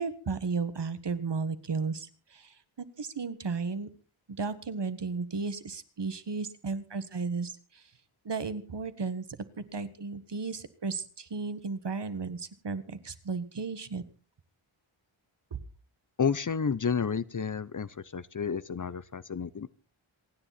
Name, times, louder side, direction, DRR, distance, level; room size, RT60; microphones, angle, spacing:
voice 1, 0.0-3.9 4.4-7.8 8.2-14.0 15.5-15.6, right 4 dB, 55° right, 12 dB, 1.6 m, -34 dB
voice 2, 16.2-19.7, left 6 dB, 40° left, 18 dB, 0.7 m, -31 dB
27.0 x 10.0 x 4.2 m, 0.37 s
wide cardioid pair, 80°, 49 cm